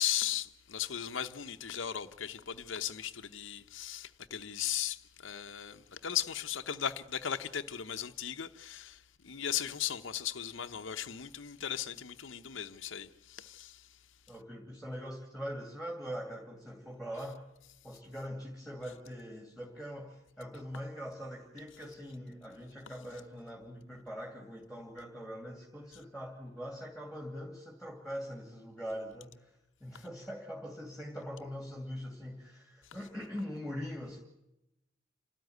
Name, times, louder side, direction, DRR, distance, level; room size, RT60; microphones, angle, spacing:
voice 1, 0.0-14.0, left 10 dB, 75° left, 0.8 m, -37 dB
voice 2, 14.3-17.4 17.8-29.6 29.8-34.2, equal, ahead, 2.7 m, -42 dB
28.5 x 13.0 x 9.4 m
head